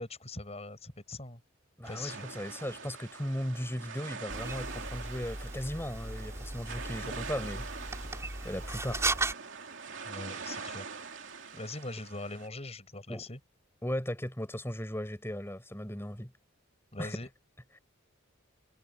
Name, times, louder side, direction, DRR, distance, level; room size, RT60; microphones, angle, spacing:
voice 1, 0.0-1.4 1.9-2.2 10.1-10.8 11.1-13.4 16.9-17.3, left 2 dB, 30° left, 6.4 m, -42 dB
voice 2, 1.8-7.7 8.4-9.0 13.1-13.2 13.8-16.3 17.0-17.2, equal, 10° left, 6.0 m, -37 dB
sound 1, 1.8-12.5, right 5 dB, 65° right, 2.9 m, -44 dB
sound 2, 4.3-9.3, right 2 dB, 15° right, 5.7 m, -36 dB
head